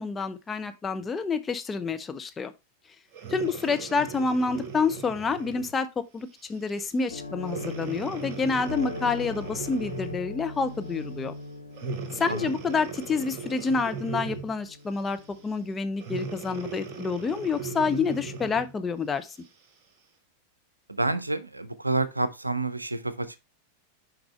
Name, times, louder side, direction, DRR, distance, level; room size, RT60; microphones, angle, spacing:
voice 1, 0.0-2.5 3.3-11.3 12.1-19.4, left 4 dB, 15° left, 0.6 m, -28 dB
Breathing, 3.1-5.8 6.4-6.6 7.4-10.3 11.7-14.6 16.0-18.7 19.4-19.5, right 5 dB, 35° right, 1.6 m, -38 dB
sound 1, 7.1-17.6 18.0-18.1 18.6-18.8, left 2 dB, 75° left, 1.0 m, -41 dB
voice 2, 20.9-23.4, right 2 dB, 85° right, 0.5 m, -29 dB
6.1 x 5.2 x 3.2 m
figure-of-eight pair, 90°, 0 cm